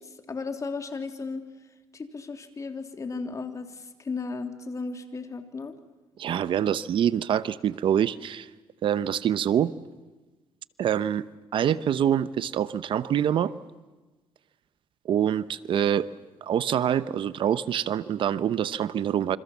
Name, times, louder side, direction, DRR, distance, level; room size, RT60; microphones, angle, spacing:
voice 1, 0.0-1.4 1.9-5.7, left 4 dB, 35° left, 6 dB, 3.3 m, -35 dB
voice 2, 6.2-8.5 8.8-9.7 10.8-11.2 11.5-13.5 15.0-16.1 16.4-19.4, right 9 dB, 65° right, 15 dB, 0.9 m, -25 dB
28.5 x 25.5 x 7.3 m, 1.2 s
cardioid pair, 90°, 9 cm